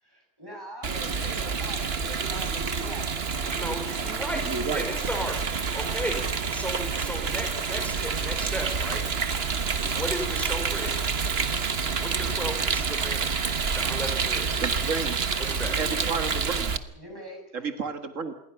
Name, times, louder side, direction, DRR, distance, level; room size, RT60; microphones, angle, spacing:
voice 1, 0.0-3.1 15.6-16.5 16.9-17.7, equal, 15° right, 1 dB, 8.0 m, -42 dB
Rain, 0.8-16.8, right 5 dB, 55° right, 1.4 m, -28 dB
voice 2, 3.5-5.4 5.7-6.2 6.5-9.1 9.9-11.0 12.0-13.3 13.8-14.5 15.4-15.8, equal, ahead, 4 dB, 5.2 m, -34 dB
voice 3, 4.4-4.9 14.6-16.8 17.5-18.3, right 4 dB, 85° right, 8 dB, 2.1 m, -32 dB
27.0 x 21.5 x 5.8 m, 0.71 s
omnidirectional pair, 1.3 m